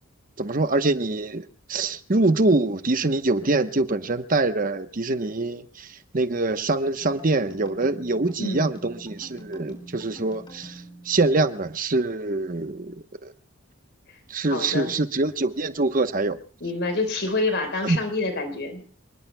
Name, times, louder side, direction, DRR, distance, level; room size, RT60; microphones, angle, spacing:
voice 1, 0.4-13.0 13.2-13.3 14.3-16.4 17.8-18.0, right 2 dB, 40° right, 1.0 m, -24 dB
sound 1, 7.0-11.8, right 1 dB, 25° left, 5.0 m, -46 dB
voice 2, 14.5-14.9 16.6-18.9, left 3 dB, 55° left, 4.3 m, -27 dB
28.0 x 20.5 x 2.2 m
head